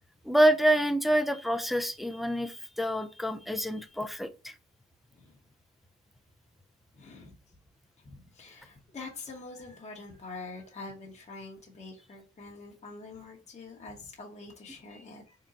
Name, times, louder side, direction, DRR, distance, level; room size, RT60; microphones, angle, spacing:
voice 1, 0.3-4.5 14.9-15.0, right 1 dB, ahead, 0.3 m, -27 dB
voice 2, 6.9-7.3 8.0-15.4, left 3 dB, 25° left, 0.9 m, -45 dB
3.8 x 2.2 x 3.9 m
cardioid pair, 90°, 30 cm